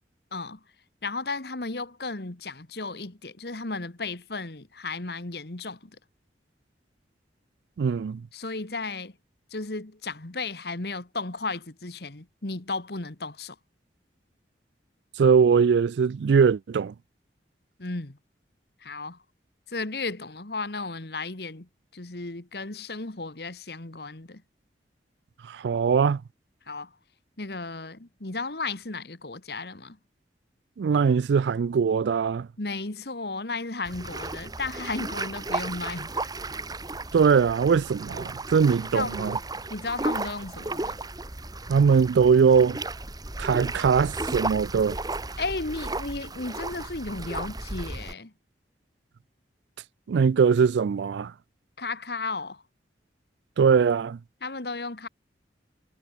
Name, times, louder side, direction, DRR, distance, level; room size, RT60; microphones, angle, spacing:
voice 1, 1.0-6.0 8.3-9.1 9.5-13.6 17.8-18.2 18.8-19.2 19.7-24.4 26.7-26.9 27.4-30.0 32.6-36.1 38.9-39.4 39.7-41.0 45.4-48.3 51.8-52.6 54.4-55.1, left 3 dB, 60° left, 1.7 m, -34 dB
voice 2, 7.8-8.2 15.2-16.9 25.4-26.2 30.8-32.5 37.1-39.4 41.7-42.8 43.4-45.0 50.1-51.3 53.6-54.2, right 6 dB, 75° right, 0.4 m, -21 dB
sound 1, 33.8-48.1, right 2 dB, 20° right, 2.0 m, -34 dB
head